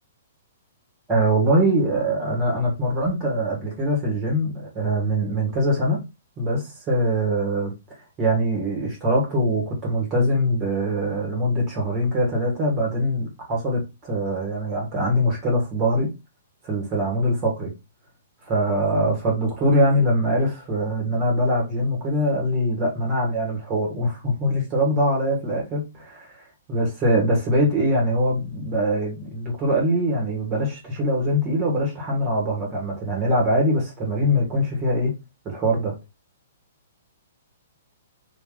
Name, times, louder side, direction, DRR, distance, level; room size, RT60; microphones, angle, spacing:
voice 1, 1.1-6.0 6.4-7.7 8.2-16.1 16.6-17.7 18.5-26.4 26.7-35.1 35.4-35.9, equal, 30° right, 1.7 m, -23 dB
3.0 x 2.8 x 3.8 m
hypercardioid pair, 120°, 0 cm